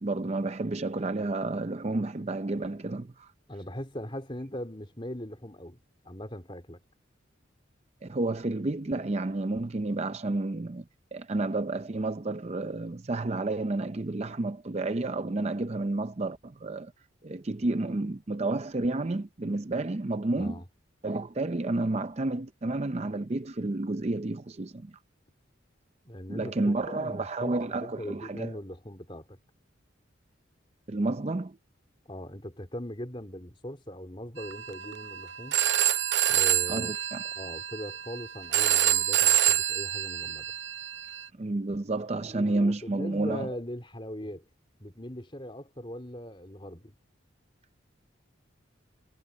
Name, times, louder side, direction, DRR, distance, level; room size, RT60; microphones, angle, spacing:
voice 1, 0.0-3.3 8.0-10.8 11.1-16.9 17.2-20.6 21.0-24.9 26.3-28.5 30.9-31.6 36.7-37.2 41.4-43.5, right 2 dB, 30° right, 0.5 m, -30 dB
voice 2, 3.5-5.8 6.1-6.8 20.4-20.7 26.1-29.4 32.1-35.6 36.3-37.0 37.4-40.5 42.2-44.4 44.8-46.9, equal, 25° left, 3.5 m, -40 dB
Telephone, 34.4-41.3, right 12 dB, 65° right, 0.7 m, -27 dB
head